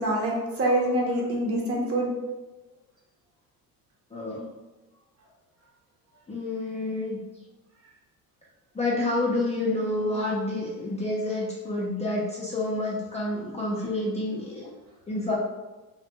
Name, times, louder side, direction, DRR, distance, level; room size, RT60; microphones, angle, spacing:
voice 1, 0.0-2.1, right 1 dB, 30° right, -2 dB, 0.8 m, -25 dB
voice 2, 4.1-4.4 6.3-7.2 8.8-14.7 15.1-15.3, left 2 dB, 15° left, -6 dB, 0.5 m, -28 dB
2.4 x 2.2 x 2.8 m, 1.1 s
hypercardioid pair, 60°, 43 cm